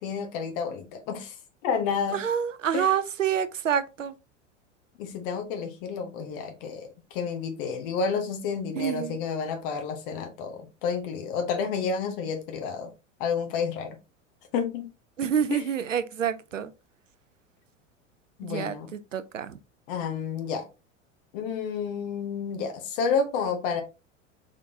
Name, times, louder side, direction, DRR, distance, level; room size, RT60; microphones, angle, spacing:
voice 1, 0.0-1.4 1.6-2.2 2.7-2.9 5.0-12.9 13.2-14.0 14.5-14.9 15.5-15.7 18.4-18.9 19.9-20.7 21.3-23.8, left 5 dB, 45° left, 1.0 m, -30 dB
voice 2, 2.1-4.1 8.8-9.2 15.2-16.7 18.4-19.6, right 8 dB, 80° right, 0.5 m, -28 dB
3.7 x 3.5 x 2.7 m
figure-of-eight pair, 80°, 37 cm